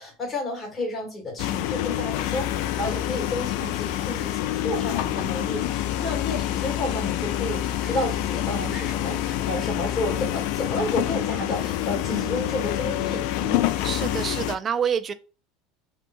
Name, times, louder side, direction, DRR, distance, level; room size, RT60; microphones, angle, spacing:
voice 1, 0.0-13.6, left 2 dB, 20° left, 1.9 m, -31 dB
sound 1, 1.4-14.5, left 13 dB, 65° left, 0.3 m, -27 dB
voice 2, 12.1-13.1 13.8-15.1, right 7 dB, 25° right, 0.3 m, -29 dB
3.3 x 2.9 x 2.6 m
supercardioid pair, 140°, 0 cm